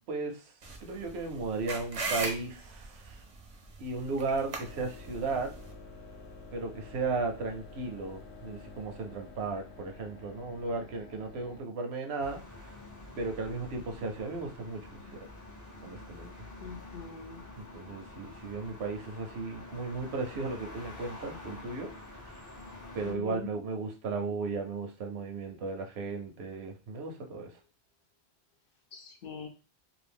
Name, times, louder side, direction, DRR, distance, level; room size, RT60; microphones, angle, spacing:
voice 1, 0.1-0.5 0.8-3.2 3.8-5.5 6.5-12.7 13.2-15.0 15.8-16.3 17.6-21.9 22.3-22.4 22.9-27.5, right 3 dB, 75° right, 3 dB, 0.9 m, -35 dB
sound 1, 0.6-5.7, right 3 dB, 40° right, 0.5 m, -39 dB
sound 2, 4.6-11.6, left 3 dB, 85° left, 1.0 m, -49 dB
sound 3, 12.2-23.1, left 2 dB, 25° left, 0.5 m, -47 dB
voice 2, 16.6-17.4 23.0-23.5 28.9-29.5, left 5 dB, 60° left, 4 dB, 0.8 m, -42 dB
2.6 x 2.5 x 3.4 m, 0.31 s
omnidirectional pair, 1.1 m